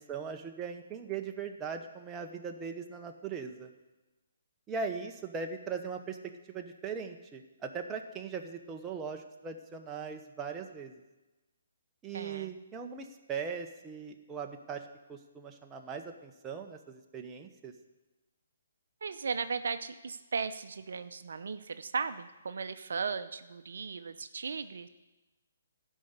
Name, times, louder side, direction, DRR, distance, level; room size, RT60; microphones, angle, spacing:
voice 1, 0.0-3.7 4.7-6.2 6.5-11.0 12.0-14.8 15.1-17.7, right 5 dB, 15° right, 3 dB, 0.8 m, -39 dB
voice 2, 12.1-12.5 19.0-24.9, right 5 dB, 70° right, 11 dB, 0.6 m, -36 dB
12.5 x 5.5 x 8.0 m, 1.1 s
hypercardioid pair, 150°, 0 cm